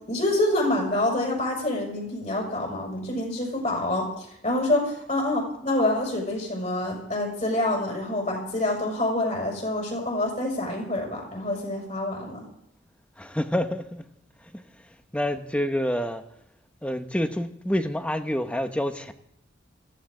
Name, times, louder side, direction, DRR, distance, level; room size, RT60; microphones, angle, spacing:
voice 1, 0.1-12.5, left 1 dB, 40° left, 6.3 m, -27 dB
voice 2, 13.2-14.0 14.5-14.6 15.1-16.2 16.8-19.1, left 1 dB, 5° left, 1.0 m, -27 dB
19.0 x 15.5 x 3.8 m
head